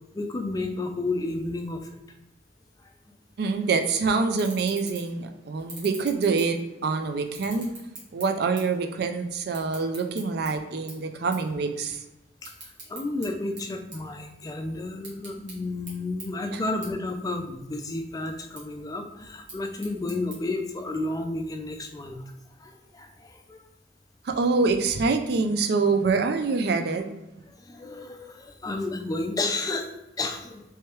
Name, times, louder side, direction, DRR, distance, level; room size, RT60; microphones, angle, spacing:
voice 1, 0.1-1.9 12.4-12.5 12.9-22.2 22.6-23.7 27.5-30.6, left 2 dB, 20° left, 5 dB, 0.3 m, -32 dB
voice 2, 3.4-7.7 8.1-12.0 16.5-16.6 24.2-27.1, right 4 dB, 60° right, 6 dB, 0.4 m, -25 dB
sound 1, 3.8-3.9 4.3-5.2 5.6-6.9 7.3-8.8 9.1-10.5 10.9-11.0 11.3-11.5 11.9-13.3 13.6-14.5 14.9-15.5 15.9-16.0 16.2-16.3 16.8-16.9 17.3-17.8 18.3-18.6 19.3-20.4, right 3 dB, 80° right, 1.4 m, -43 dB
3.3 x 3.2 x 3.0 m, 0.97 s
head